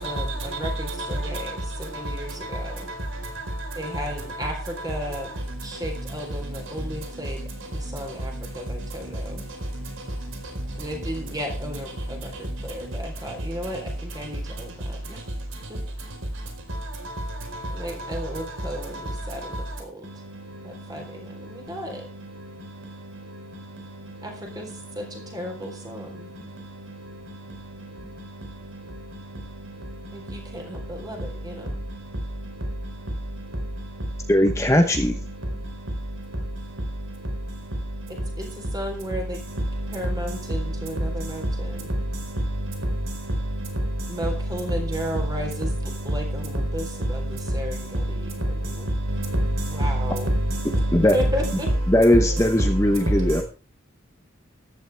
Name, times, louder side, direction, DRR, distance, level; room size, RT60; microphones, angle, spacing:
voice 1, 0.0-2.9 3.8-5.3 5.6-7.5 7.7-9.4 10.8-15.2 15.7-15.8 17.7-20.1 20.6-22.1 24.2-26.3 30.1-31.7 38.4-39.4 39.9-41.9 44.1-45.7 46.0-48.9 49.7-50.3 51.1-51.7, equal, 20° right, 4.1 m, -34 dB
voice 2, 1.0-1.5 49.1-51.7, right 1 dB, 70° right, 4.6 m, -25 dB
voice 3, 34.3-35.1 50.9-51.2 51.9-53.4, left 1 dB, 15° left, 1.0 m, -19 dB
14.5 x 12.0 x 3.5 m
head